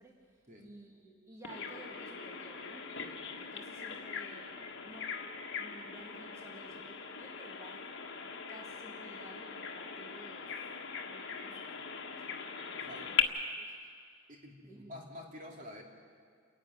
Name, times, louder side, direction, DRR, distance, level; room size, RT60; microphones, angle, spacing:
voice 1, 0.0-4.6 4.8-7.9 8.5-10.7 11.1-13.9 14.6-14.9, right 1 dB, 15° right, -2 dB, 1.9 m, -55 dB
Bird vocalization bird call bird song, 1.4-13.2, left 7 dB, 60° left, 1.6 m, -40 dB
voice 2, 12.8-13.1 14.3-15.8, left 1 dB, 40° right, 1 dB, 2.7 m, -48 dB
29.5 x 11.0 x 9.4 m, 2.1 s
head